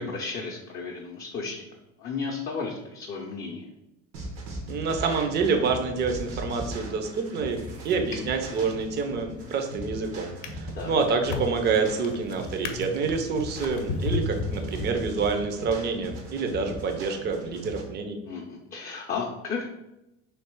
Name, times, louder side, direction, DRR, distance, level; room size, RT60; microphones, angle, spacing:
voice 1, 0.0-1.6 2.0-3.7 10.7-11.0 18.2-19.6, left 4 dB, 30° left, -1 dB, 0.5 m, -34 dB
sound 1, 4.1-17.8, right 1 dB, 80° right, 1.2 m, -39 dB
voice 2, 4.7-7.6 7.8-18.2, right 4 dB, 30° right, 5 dB, 0.5 m, -27 dB
Drawer open or close, 9.2-9.7 10.2-15.4 16.1-16.3, left 4 dB, 75° left, 0.7 m, -35 dB
3.2 x 2.8 x 4.4 m, 0.90 s
cardioid pair, 130°, 33 cm